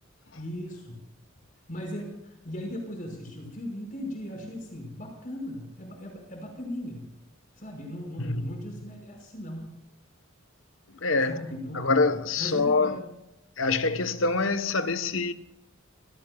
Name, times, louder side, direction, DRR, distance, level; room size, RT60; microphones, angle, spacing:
voice 1, 0.4-1.0 1.7-7.1 7.6-9.8 11.3-12.0 12.4-13.0, equal, 45° left, 5.5 m, -38 dB
voice 2, 8.2-8.5 10.9-11.4 11.7-13.0 13.6-15.3, left 3 dB, 70° left, 1.1 m, -25 dB
29.0 x 17.5 x 2.4 m
head